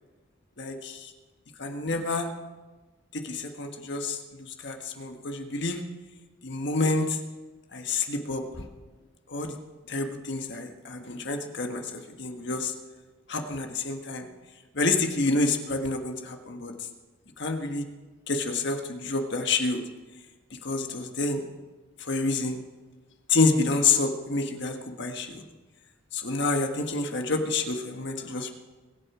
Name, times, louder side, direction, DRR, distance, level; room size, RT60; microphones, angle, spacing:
voice 1, 0.6-1.1 1.6-2.3 3.1-5.8 6.4-7.2 7.7-8.4 9.3-9.5 9.9-12.7 13.3-14.3 14.7-16.7 17.4-17.9 18.3-19.8 20.6-21.4 22.1-22.6 23.3-25.4 26.1-28.5, left 3 dB, 55° left, 4 dB, 1.5 m, -28 dB
23.0 x 8.7 x 4.9 m, 1.2 s
head